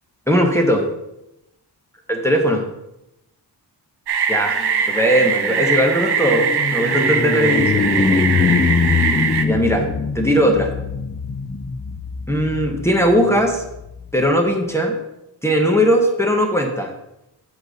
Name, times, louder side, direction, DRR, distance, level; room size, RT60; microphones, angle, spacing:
voice 1, 0.3-0.8 2.1-2.6 4.3-4.6 4.9-7.8 9.4-9.9 10.1-10.7 12.3-13.6 14.1-15.0 15.4-16.9, equal, 5° left, 1 dB, 0.8 m, -18 dB
sound 1, 4.1-9.5, right 6 dB, 70° right, 0.7 m, -21 dB
sound 2, 4.6-14.1, left 5 dB, 25° left, 0.3 m, -23 dB
8.0 x 4.0 x 6.2 m, 0.89 s
wide cardioid pair, 160°, 42 cm